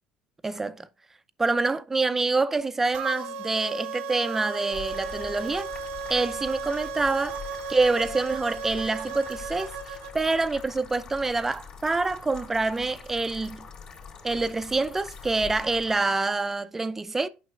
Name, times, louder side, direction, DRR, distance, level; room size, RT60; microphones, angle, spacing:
voice 1, 0.4-0.9 1.4-5.7 6.1-7.4 7.7-13.7 14.2-17.3, right 3 dB, 15° right, 0.5 m, -26 dB
sound 1, 2.9-10.1, right 5 dB, 85° right, 0.8 m, -35 dB
sound 2, 4.7-16.0, left 5 dB, 45° left, 2.7 m, -44 dB
9.4 x 5.9 x 2.4 m
cardioid pair, 115°, 2 cm